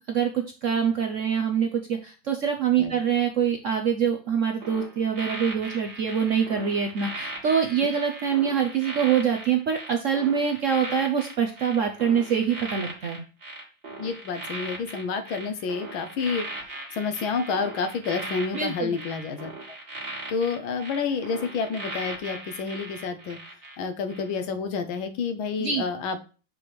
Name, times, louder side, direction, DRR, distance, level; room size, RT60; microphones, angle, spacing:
voice 1, 0.0-13.2 18.5-19.0 25.6-25.8, right 7 dB, 65° right, 4 dB, 0.8 m, -25 dB
sound 1, 4.6-23.8 24.1-24.4, right 2 dB, 35° right, 1.4 m, -39 dB
voice 2, 14.0-16.5 16.9-19.8 20.3-23.4 23.8-26.2, left 5 dB, 90° left, 9 dB, 1.7 m, -29 dB
6.0 x 3.3 x 5.9 m, 0.35 s
omnidirectional pair, 2.1 m